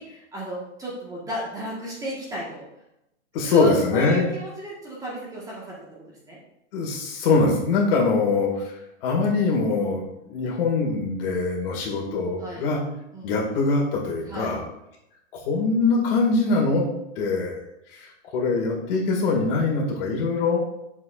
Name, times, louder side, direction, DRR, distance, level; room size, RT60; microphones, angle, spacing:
voice 1, 0.0-2.6 3.4-6.4 7.8-8.4 9.7-10.0 12.4-12.7 13.1-13.3 14.2-14.6, right 1 dB, 10° right, -6 dB, 1.6 m, -34 dB
voice 2, 3.3-4.3 6.7-8.5 9.0-12.8 13.2-14.6 15.3-16.8 17.2-17.6 17.9-18.0 18.3-20.6, left 3 dB, 50° left, -1 dB, 2.2 m, -23 dB
7.9 x 7.0 x 2.5 m, 0.86 s
hypercardioid pair, 145°, 36 cm